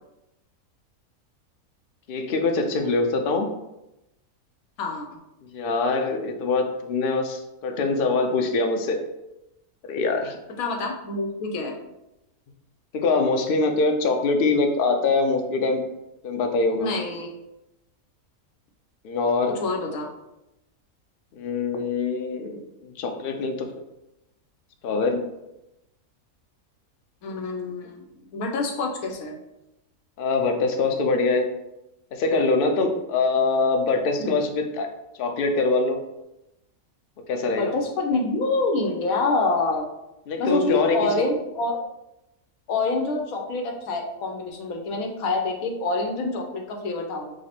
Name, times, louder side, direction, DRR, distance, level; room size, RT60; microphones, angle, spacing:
voice 1, 2.1-3.5 5.5-9.0 9.9-10.4 12.9-15.8 16.2-16.9 19.0-19.6 21.3-23.7 24.8-25.2 30.2-31.5 32.1-34.9 35.2-36.0 37.3-37.7 40.3-41.1, left 3 dB, 60° left, 4 dB, 0.6 m, -23 dB
voice 2, 10.6-11.7 16.7-17.3 19.5-20.1 27.2-29.3 34.2-34.4 37.4-39.8 40.4-41.8 42.7-47.3, left 3 dB, 75° left, 2 dB, 1.2 m, -26 dB
5.0 x 2.0 x 4.2 m, 0.90 s
omnidirectional pair, 1.5 m